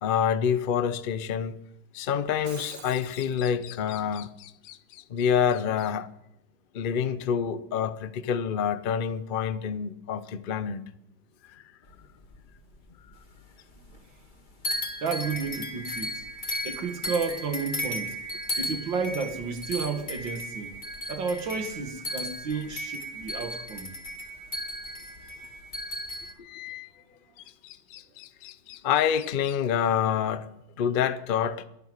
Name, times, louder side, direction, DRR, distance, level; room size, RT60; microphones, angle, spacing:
voice 1, 0.0-1.6 1.9-6.1 6.7-10.8 11.5-11.6 26.4-27.0 27.4-30.5 30.8-31.6, left 8 dB, 60° left, 0.5 m, -28 dB
Shatter, 2.3-3.4, right 3 dB, 50° right, 2.4 m, -45 dB
sound 1, 11.8-13.4 13.7-14.4 14.6-26.3, equal, 25° left, 1.9 m, -35 dB
voice 2, 15.0-16.2 16.6-18.2 18.6-20.7 21.1-23.9, right 5 dB, 85° right, 2.4 m, -32 dB
11.5 x 11.0 x 9.2 m
omnidirectional pair, 2.0 m